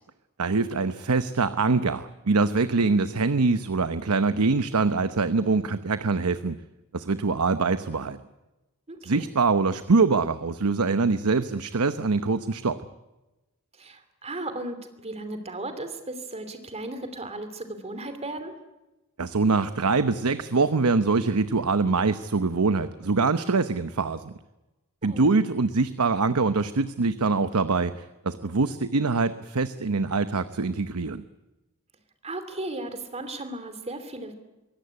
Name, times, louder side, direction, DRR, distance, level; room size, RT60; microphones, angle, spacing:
voice 1, 0.4-6.6 6.9-8.2 9.1-12.8 19.2-24.3 25.0-31.2, right 4 dB, 85° right, 11 dB, 0.9 m, -24 dB
voice 2, 8.9-9.2 13.8-18.5 25.0-25.3 32.2-34.3, right 2 dB, 30° right, 9 dB, 2.9 m, -36 dB
23.5 x 17.0 x 9.8 m, 1.0 s
head